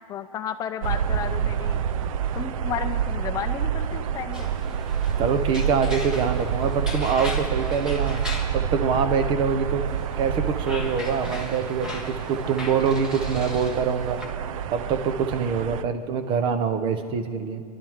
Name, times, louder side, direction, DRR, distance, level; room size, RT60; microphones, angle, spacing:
voice 1, 0.0-1.8 2.3-4.5, left 8 dB, 20° left, 7 dB, 0.7 m, -32 dB
sound 1, 0.8-15.8, right 8 dB, 65° right, 0.6 m, -28 dB
sound 2, 4.3-8.6 9.9-14.2, left 2 dB, 5° right, 1.6 m, -39 dB
voice 2, 5.2-8.3 8.5-9.8 10.2-14.2 14.7-17.6, right 6 dB, 25° right, 9 dB, 1.0 m, -25 dB
27.0 x 12.0 x 3.7 m, 2.3 s
supercardioid pair, 160°, 19 cm